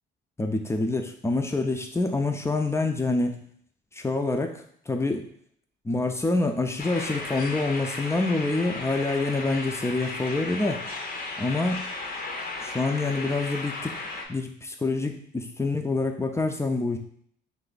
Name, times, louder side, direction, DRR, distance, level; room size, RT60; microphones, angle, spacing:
voice 1, 0.4-3.4 3.9-5.3 5.8-10.8 11.4-11.8 12.6-14.0 14.3-17.0, left 3 dB, 15° left, 4 dB, 0.6 m, -26 dB
sound 1, 6.8-14.3, left 3 dB, 45° left, 0.8 m, -35 dB
3.3 x 2.7 x 4.0 m, 0.63 s
cardioid pair, 90°, 20 cm